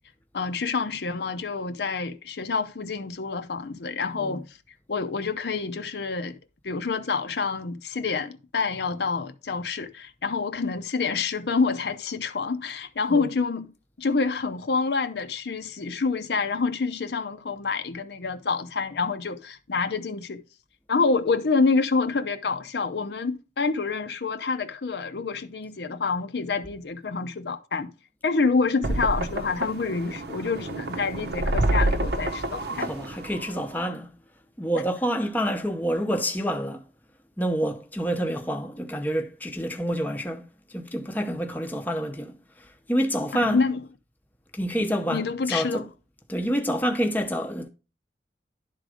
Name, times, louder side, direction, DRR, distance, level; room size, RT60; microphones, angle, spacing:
voice 1, 0.3-4.6 4.9-6.4 6.6-13.7 14.0-20.4 20.9-27.9 28.2-32.9 34.7-34.8 43.3-43.8 45.1-45.9, left 4 dB, 70° left, 0.6 m, -27 dB
sound 1, 28.8-33.8, right 1 dB, 65° right, 0.8 m, -28 dB
voice 2, 32.5-34.1 34.6-36.8 37.4-43.6 44.5-45.8 46.3-47.7, equal, 10° left, 0.7 m, -28 dB
11.0 x 3.8 x 4.9 m
head